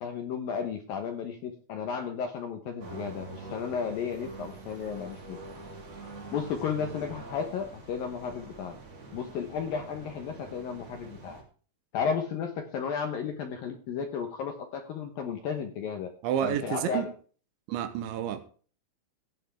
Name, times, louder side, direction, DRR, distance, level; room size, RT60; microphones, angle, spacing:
voice 1, 0.0-5.4 6.3-8.7 9.1-11.4 11.9-16.1 16.4-17.1, left 6 dB, 70° left, 5 dB, 2.3 m, -33 dB
sound 1, 2.8-11.4, right 3 dB, 40° right, 3.2 m, -45 dB
voice 2, 16.2-17.1 17.7-18.4, right 10 dB, 75° right, 10 dB, 3.2 m, -29 dB
16.0 x 9.4 x 3.5 m, 0.41 s
omnidirectional pair, 5.6 m